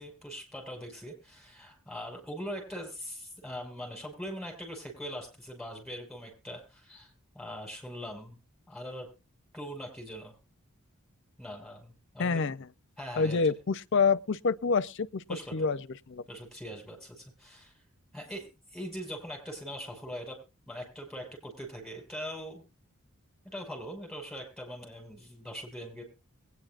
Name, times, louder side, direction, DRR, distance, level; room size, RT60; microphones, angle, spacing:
voice 1, 0.0-8.4 8.7-9.1 9.5-10.3 11.4-12.4 13.0-13.5 15.3-15.6 16.3-17.8 18.1-20.4 20.7-22.6 23.5-26.0, equal, ahead, 5.7 m, -41 dB
voice 2, 12.2-12.7 13.2-15.2 15.5-15.8 16.1-16.2, left 5 dB, 55° left, 0.5 m, -27 dB
22.5 x 9.6 x 2.5 m
head